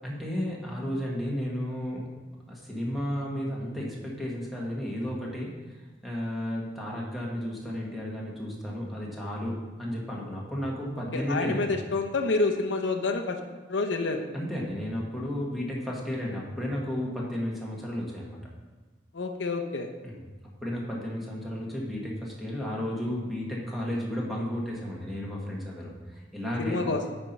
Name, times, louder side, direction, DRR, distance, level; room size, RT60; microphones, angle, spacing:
voice 1, 0.0-2.1 2.5-5.8 6.0-11.7 14.3-18.4 20.0-20.2 20.6-26.9, equal, ahead, -4 dB, 1.6 m, -33 dB
voice 2, 11.1-13.4 13.7-14.2 19.1-19.9 26.6-27.0, left 3 dB, 80° left, 4 dB, 0.7 m, -28 dB
9.5 x 4.4 x 5.4 m, 1.3 s
head